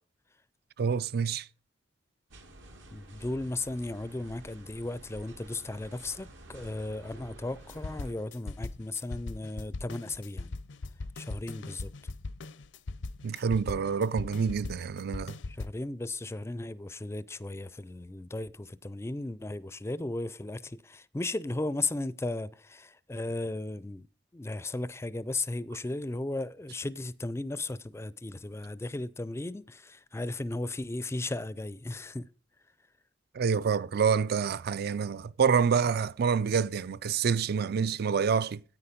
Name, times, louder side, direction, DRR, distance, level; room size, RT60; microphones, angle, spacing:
voice 1, 0.8-1.5 13.2-15.4 33.3-38.6, right 6 dB, 55° right, 0.4 m, -27 dB
sound 1, 2.3-8.1, right 1 dB, 80° right, 2.0 m, -50 dB
voice 2, 2.9-10.5 11.2-11.9 15.5-24.1 24.3-32.3, left 2 dB, 15° left, 0.4 m, -36 dB
sound 2, 7.6-15.7, left 3 dB, 70° left, 0.6 m, -39 dB
9.9 x 8.6 x 5.1 m
head